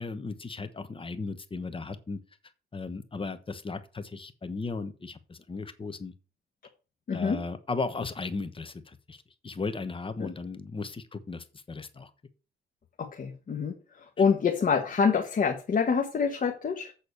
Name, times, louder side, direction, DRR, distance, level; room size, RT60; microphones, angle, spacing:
voice 1, 0.0-2.2 2.7-6.1 7.1-8.7 9.1-9.2 9.4-12.1, left 3 dB, 25° left, 1.1 m, -36 dB
voice 2, 7.1-7.4 10.2-10.3 13.0-13.7 14.2-16.9, left 6 dB, 45° left, 1.5 m, -26 dB
8.2 x 4.2 x 6.9 m
cardioid pair, 90°, 20 cm